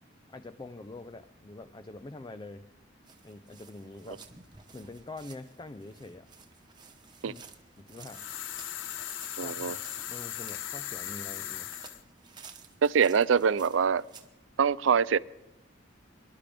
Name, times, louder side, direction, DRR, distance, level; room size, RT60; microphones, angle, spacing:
voice 1, 0.3-2.7 3.2-4.2 4.7-6.3 7.2-7.4 7.8-8.3 9.4-11.7, left 2 dB, 20° left, 11 dB, 0.4 m, -45 dB
sound 1, 3.0-14.3, right 5 dB, 20° right, 1.1 m, -54 dB
sound 2, 8.1-12.0, left 11 dB, 75° left, 0.6 m, -38 dB
voice 2, 9.4-9.8 12.8-14.0 14.6-15.2, right 6 dB, 75° right, 19 dB, 0.4 m, -24 dB
24.5 x 12.0 x 3.4 m, 0.96 s
head